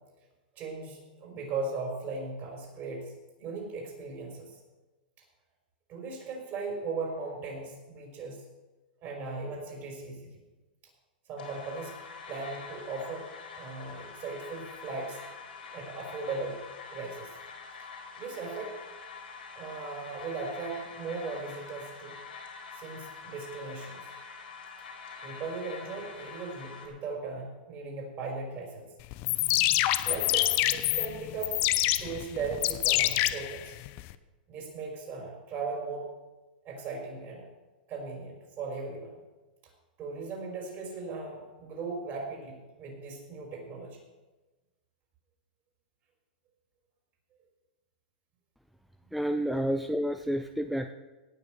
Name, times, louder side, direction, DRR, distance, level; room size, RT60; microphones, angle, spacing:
voice 1, 0.6-4.5 5.9-8.4 9.0-10.3 11.3-11.9 12.3-13.3 13.5-15.2 15.7-16.6 16.9-17.3 18.2-18.7 19.6-22.1 22.7-24.0 25.2-28.9 30.1-31.5 31.9-33.8 34.5-36.0 36.6-37.4 37.9-39.2 40.0-44.0, right 4 dB, 40° right, 0 dB, 5.7 m, -38 dB
sound 1, 11.4-26.9, left 5 dB, 90° left, 4.4 m, -45 dB
sound 2, 29.1-34.1, left 16 dB, 45° left, 0.7 m, -27 dB
voice 2, 49.1-50.9, equal, ahead, 8 dB, 0.5 m, -30 dB
18.0 x 6.7 x 6.5 m, 1.2 s
hypercardioid pair, 120°, 5 cm